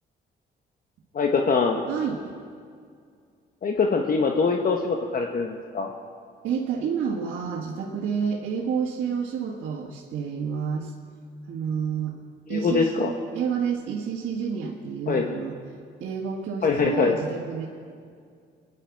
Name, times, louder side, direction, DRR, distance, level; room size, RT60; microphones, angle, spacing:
voice 1, 1.1-1.8 3.6-5.9 12.5-13.1 15.1-15.3 16.6-17.2, left 4 dB, 45° left, 2 dB, 1.2 m, -23 dB
voice 2, 1.9-2.3 6.4-10.9 11.5-12.2 12.5-15.6 16.0-17.7, right 6 dB, 75° right, -3 dB, 1.6 m, -29 dB
23.0 x 10.0 x 4.7 m, 2.2 s
cardioid pair, 90°, 20 cm